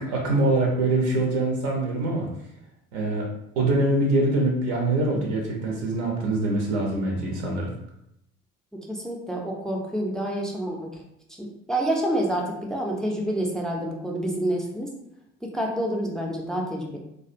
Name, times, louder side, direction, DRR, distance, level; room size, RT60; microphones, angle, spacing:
voice 1, 0.0-2.3 2.9-3.3 3.6-7.7, right 2 dB, 65° right, -1 dB, 0.6 m, -24 dB
voice 2, 8.7-11.0 11.4-14.9 15.4-17.0, right 1 dB, ahead, -1 dB, 0.3 m, -28 dB
2.3 x 2.1 x 2.4 m, 0.79 s
figure-of-eight pair, 50°, 36 cm